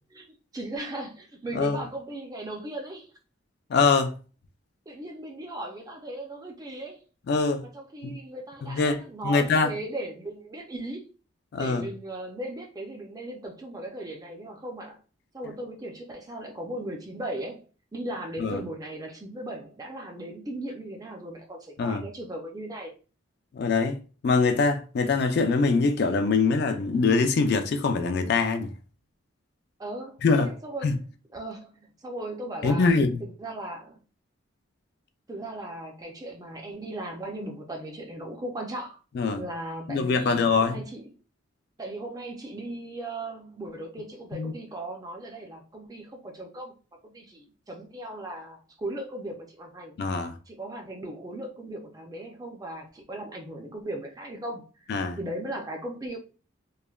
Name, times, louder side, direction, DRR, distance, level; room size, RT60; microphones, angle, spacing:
voice 1, 0.5-3.1 4.9-7.0 7.6-11.0 11.6-15.0 15.3-22.9 29.8-30.9 31.3-32.9 33.2-34.0 35.3-39.0 39.4-41.1 41.8-46.7 47.0-49.9 50.5-54.9 55.2-56.2, right 1 dB, 20° right, 0.4 m, -37 dB
voice 2, 3.7-4.1 7.3-7.6 8.0-8.2 8.6-9.7 11.5-11.9 18.4-18.6 21.8-22.0 23.5-24.0 24.2-28.7 30.2-30.5 30.8-31.0 32.6-33.2 39.1-39.4 39.9-40.8 44.3-44.5 50.0-50.3 54.9-55.2, left 4 dB, 50° left, 0.3 m, -23 dB
3.1 x 2.1 x 2.3 m
head